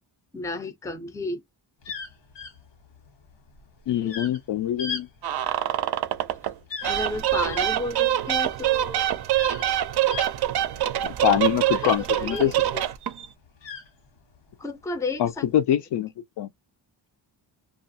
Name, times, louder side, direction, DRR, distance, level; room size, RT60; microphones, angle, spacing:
voice 1, 0.3-1.4 4.0-4.2 6.8-9.1 11.7-12.8 14.6-15.4, left 2 dB, 10° left, 0.4 m, -33 dB
sound 1, 1.8-12.8 13.1-14.5 15.2-15.5, left 5 dB, 85° left, 1.2 m, -39 dB
voice 2, 3.9-5.1 11.0-12.5 15.2-16.1 16.4-16.5, left 11 dB, 70° left, 0.5 m, -24 dB
sound 2, 5.2-6.5 6.8-13.3, right 12 dB, 60° right, 0.5 m, -25 dB
2.4 x 2.4 x 2.6 m
wide cardioid pair, 135°, 44 cm